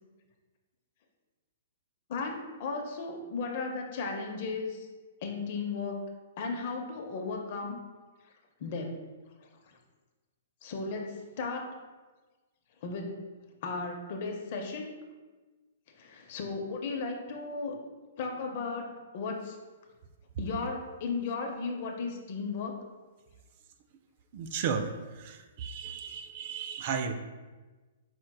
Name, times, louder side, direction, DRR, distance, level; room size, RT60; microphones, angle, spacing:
voice 1, 2.1-4.9 5.2-6.1 6.4-7.8 8.6-8.9 10.6-11.7 12.8-14.9 15.9-17.8 18.2-19.6 20.4-22.8, left 4 dB, 45° left, 3 dB, 0.7 m, -35 dB
voice 2, 24.3-27.1, right 6 dB, 45° right, 7 dB, 0.3 m, -34 dB
4.8 x 4.4 x 2.3 m, 1.3 s
hypercardioid pair, 150°, 0 cm